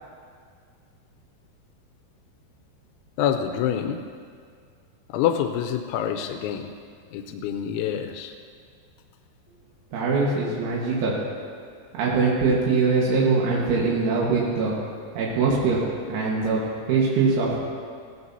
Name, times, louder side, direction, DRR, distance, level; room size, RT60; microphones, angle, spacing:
voice 1, 3.2-4.0 5.1-6.7 7.1-8.3, left 9 dB, 90° left, 5 dB, 3.0 m, -26 dB
voice 2, 9.9-11.2 12.0-14.8 15.2-15.8 16.1-16.6 16.9-17.6, right 4 dB, 85° right, -5 dB, 3.9 m, -22 dB
17.5 x 15.5 x 2.8 m, 2.1 s
omnidirectional pair, 5.4 m